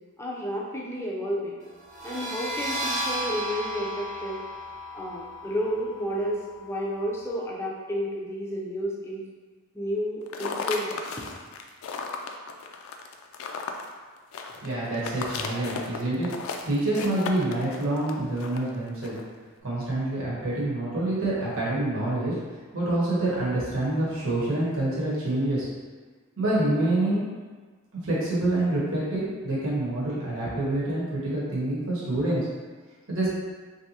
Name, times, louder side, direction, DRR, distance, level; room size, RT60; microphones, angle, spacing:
voice 1, 0.2-1.6 2.0-4.4 4.9-9.2 9.7-11.0, equal, 10° left, -4 dB, 0.4 m, -31 dB
sound 1, 1.8-7.3, equal, 35° right, 0.6 m, -34 dB
sound 2, 10.2-19.3, left 4 dB, 75° left, 0.3 m, -35 dB
voice 2, 14.6-16.3 16.6-19.1 19.6-22.3 22.7-25.7 26.4-27.3 28.0-32.5 33.1-33.3, right 1 dB, 70° right, -7 dB, 1.1 m, -27 dB
3.4 x 2.7 x 2.8 m, 1.4 s
head